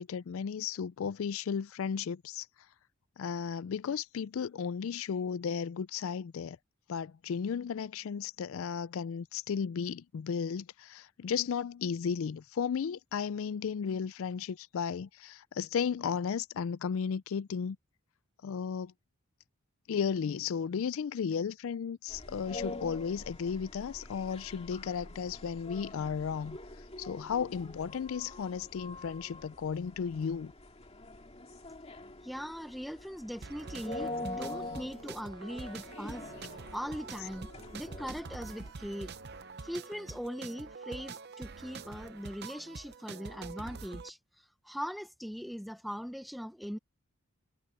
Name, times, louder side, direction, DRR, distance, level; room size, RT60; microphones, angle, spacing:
voice 1, 0.0-2.5 3.2-6.6 6.9-17.8 18.4-18.9 19.9-26.6 27.0-30.5, left 6 dB, 70° left, 0.4 m, -34 dB
sound 1, 22.1-38.7, left 2 dB, 30° left, 2.4 m, -45 dB
voice 2, 32.2-39.1 39.6-46.8, equal, ahead, 0.6 m, -40 dB
sound 2, 33.4-44.1, right 4 dB, 50° right, 0.7 m, -46 dB
head